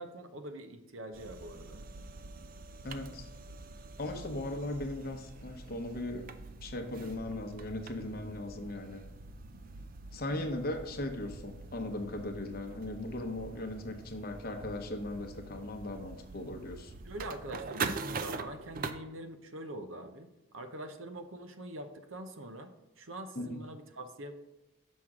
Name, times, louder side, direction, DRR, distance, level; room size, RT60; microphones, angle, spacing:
voice 1, 0.0-1.8 17.0-20.3 20.5-22.7 23.0-24.3, right 1 dB, 70° right, 8 dB, 0.7 m, -44 dB
sound 1, 1.1-18.9, right 4 dB, 40° right, 0.4 m, -44 dB
voice 2, 2.8-3.3 4.0-6.3 6.6-9.0 10.1-16.9 23.4-23.6, left 1 dB, 45° left, 5 dB, 0.8 m, -38 dB
6.3 x 5.9 x 3.6 m, 1.1 s
head